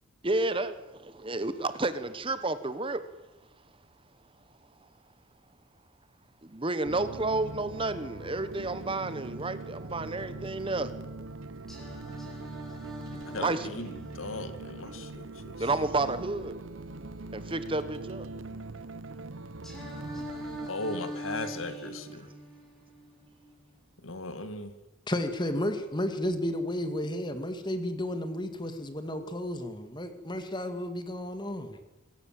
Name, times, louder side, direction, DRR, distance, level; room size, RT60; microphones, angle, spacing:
voice 1, 0.2-0.7 1.0-3.0 6.5-10.9 13.3-13.7 15.6-16.5 17.3-18.3, right 2 dB, 25° right, 1.2 m, -30 dB
sound 1, 6.9-20.7, right 3 dB, 75° right, 1.0 m, -42 dB
Singing, 11.7-15.7 19.6-23.7, equal, ahead, 7.5 m, -43 dB
voice 2, 13.3-15.6 20.7-22.3 24.0-24.7, left 2 dB, 85° left, 2.2 m, -37 dB
voice 3, 25.1-31.8, left 1 dB, 20° left, 2.2 m, -32 dB
25.0 x 17.0 x 7.7 m
head